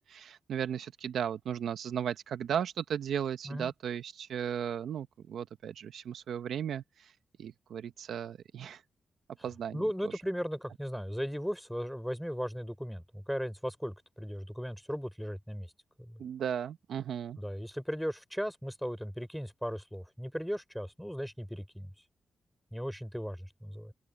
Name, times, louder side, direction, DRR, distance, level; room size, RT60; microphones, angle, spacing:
voice 1, 0.0-7.1 7.4-8.8 9.4-9.8 16.2-17.4, right 8 dB, 85° right, 0.9 m, -36 dB
voice 2, 9.7-15.7 16.0-16.2 17.4-21.9 22.7-23.9, equal, ahead, 3.6 m, -37 dB
open air
cardioid pair, 95°, 0 cm